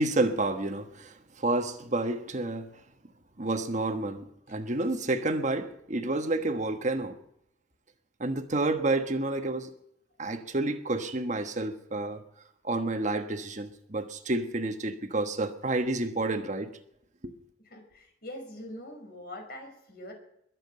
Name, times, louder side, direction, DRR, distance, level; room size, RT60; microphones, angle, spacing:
voice 1, 0.0-2.7 3.4-7.2 8.2-9.7 10.2-12.2 12.6-16.7 17.2-17.3, right 2 dB, 40° right, 1.3 m, -29 dB
voice 2, 17.6-20.1, left 1 dB, 55° left, 5.2 m, -43 dB
22.0 x 7.6 x 7.5 m
head